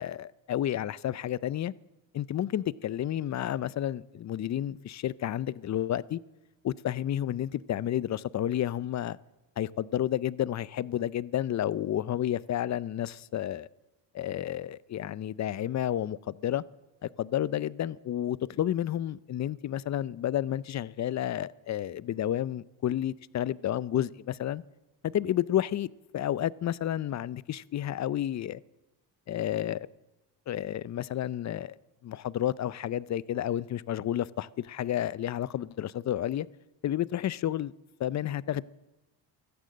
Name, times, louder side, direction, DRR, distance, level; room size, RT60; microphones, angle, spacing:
voice 1, 0.0-1.7 2.1-6.2 6.6-9.2 9.6-13.7 14.1-16.6 17.2-24.6 25.0-25.9 26.1-28.6 29.3-29.8 30.5-31.8 32.0-36.5 36.8-37.7 38.0-38.6, left 11 dB, 35° left, 0.5 m, -31 dB
16.5 x 13.5 x 6.4 m
cardioid pair, 90°, 48 cm